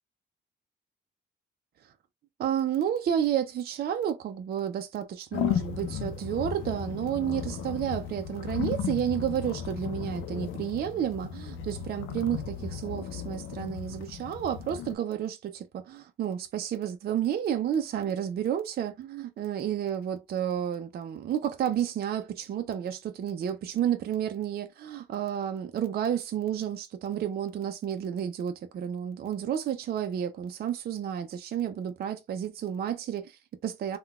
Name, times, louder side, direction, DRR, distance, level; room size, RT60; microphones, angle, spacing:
voice 1, 2.4-34.0, right 9 dB, 50° right, 0.4 m, -31 dB
sound 1, 5.3-15.0, left 7 dB, 80° left, 0.5 m, -35 dB
3.7 x 2.2 x 2.3 m
cardioid pair, 90°, 20 cm